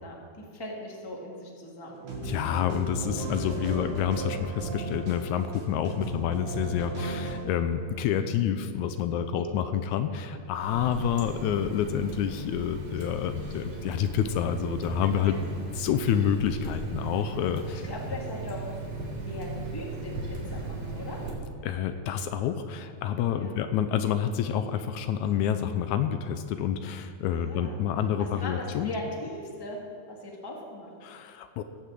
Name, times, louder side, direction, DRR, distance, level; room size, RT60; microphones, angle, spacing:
voice 1, 0.0-2.0 9.3-9.5 15.0-15.4 17.8-21.2 23.3-23.5 27.3-27.8 28.2-29.8 30.1-30.9, left 1 dB, 10° left, -2 dB, 1.4 m, -39 dB
sound 1, 2.0-7.4, right 2 dB, 80° right, 3.5 m, -35 dB
voice 2, 2.2-15.4 15.8-17.8 21.6-28.9 31.0-31.6, left 9 dB, 80° left, 9 dB, 2.0 m, -28 dB
Water tap faucet, 10.6-21.3, right 2 dB, 60° right, 3.2 m, -37 dB
16.0 x 6.6 x 7.6 m, 2.2 s
omnidirectional pair, 3.4 m